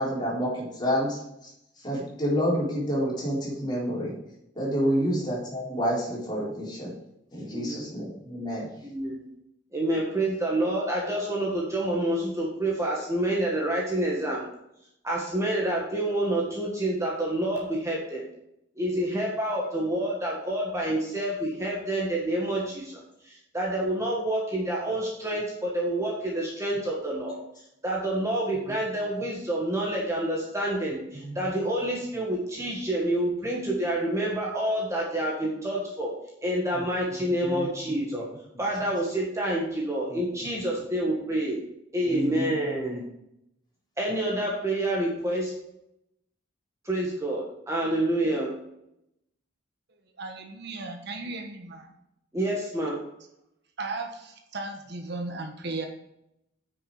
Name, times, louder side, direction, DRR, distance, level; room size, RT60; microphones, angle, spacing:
voice 1, 0.0-4.1 4.5-6.9 7.3-8.9 28.6-28.7 31.2-31.4 36.7-36.8 37.4-38.2 38.5-38.6 40.1-40.2 42.0-43.0, equal, 25° left, -5 dB, 4.1 m, -29 dB
voice 2, 8.8-9.2 9.7-14.5 15.0-18.2 18.8-23.0 23.2-27.4 27.8-36.1 36.4-38.2 38.6-41.6 41.9-43.0 44.0-45.5 46.8-48.5 52.3-53.0, right 1 dB, 15° right, -3 dB, 1.7 m, -28 dB
voice 3, 50.2-51.9 53.8-55.9, right 3 dB, 60° right, 5 dB, 1.3 m, -36 dB
9.7 x 6.4 x 5.0 m, 0.80 s
head